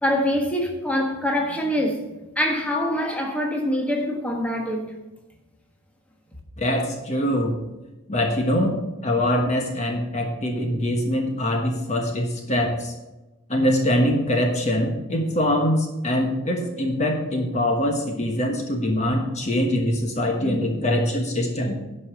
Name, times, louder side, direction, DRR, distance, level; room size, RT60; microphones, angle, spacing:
voice 1, 0.0-4.9, equal, 5° left, 0 dB, 1.4 m, -24 dB
voice 2, 6.6-7.6 8.1-12.9 13.5-21.8, left 1 dB, 35° left, 2 dB, 1.3 m, -23 dB
11.0 x 5.6 x 6.7 m, 1.0 s
head